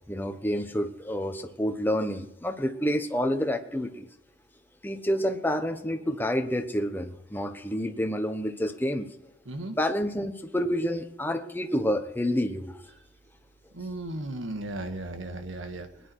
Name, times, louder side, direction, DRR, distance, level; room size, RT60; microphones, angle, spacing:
voice 1, 0.0-4.1 4.8-9.1 9.7-12.8, equal, 10° left, 1.0 m, -28 dB
voice 2, 9.5-9.8 13.7-15.9, right 1 dB, 85° right, 1.7 m, -35 dB
20.5 x 10.0 x 4.7 m
head